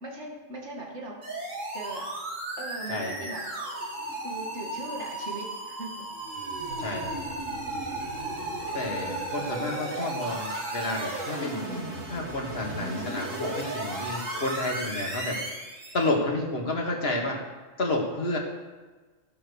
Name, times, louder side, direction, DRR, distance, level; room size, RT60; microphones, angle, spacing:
voice 1, 0.0-1.2 1.7-2.1 2.6-3.4 4.2-5.9, right 2 dB, 65° right, -1 dB, 2.3 m, -39 dB
sound 1, 1.2-16.1, right 1 dB, 90° right, 2.3 m, -34 dB
voice 2, 2.9-3.3 6.8-7.1 8.7-11.6 12.1-15.4 15.9-17.4 17.8-18.4, left 2 dB, 55° left, 0 dB, 2.0 m, -30 dB
14.5 x 5.2 x 6.3 m, 1.3 s
omnidirectional pair, 1.3 m